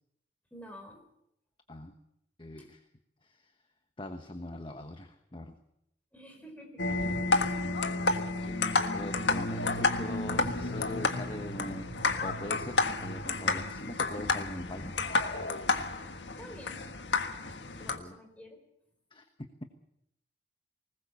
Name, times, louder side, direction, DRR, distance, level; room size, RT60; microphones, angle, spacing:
voice 1, 0.5-1.1 2.6-2.7 6.1-6.9 16.4-16.8 17.8-18.6, equal, 10° left, 3 dB, 4.3 m, -49 dB
voice 2, 2.4-2.9 3.2-3.5 4.0-5.6 8.4-11.9 12.2-15.0 17.9-18.2 19.1-19.6, left 1 dB, 30° left, 7 dB, 1.2 m, -42 dB
sound 1, 6.8-18.0, left 3 dB, 80° left, 1.6 m, -31 dB
sound 2, 14.8-16.4, left 2 dB, 60° left, 1.4 m, -42 dB
20.5 x 20.0 x 7.0 m, 0.78 s
head